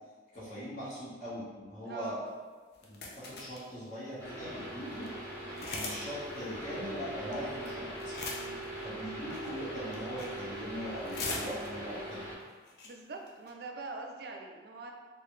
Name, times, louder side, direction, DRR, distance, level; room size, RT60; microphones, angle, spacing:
voice 1, 0.3-2.2 2.9-5.1 5.7-8.1 8.8-12.3, equal, 45° left, -10 dB, 1.4 m, -41 dB
voice 2, 1.8-2.2 5.4-5.7 8.3-8.6 12.8-14.9, right 3 dB, 60° right, 2 dB, 0.4 m, -43 dB
sound 1, 2.7-3.7 4.3-4.4 4.6-4.7 4.9-5.1 5.5-6.0 6.3-6.4 7.3-7.7 8.0-8.6 9.3-9.6 9.9-10.4 10.7-11.9 12.4-12.5 12.7-12.9 13.3-13.5, left 3 dB, 60° left, 0.5 m, -39 dB
sound 2, 4.2-12.3, right 1 dB, 15° left, 1.1 m, -41 dB
3.8 x 2.4 x 3.1 m, 1.5 s
head